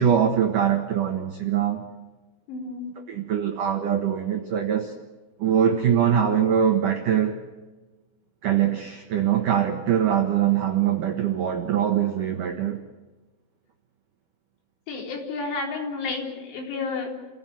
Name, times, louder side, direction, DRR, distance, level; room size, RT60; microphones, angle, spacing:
voice 1, 0.0-1.8 3.1-4.9 5.4-7.4 8.4-12.8, right 9 dB, 85° right, 1.8 m, -23 dB
voice 2, 2.5-2.9 14.9-17.1, left 4 dB, 85° left, 6.8 m, -31 dB
29.5 x 16.5 x 7.8 m
omnidirectional pair, 6.0 m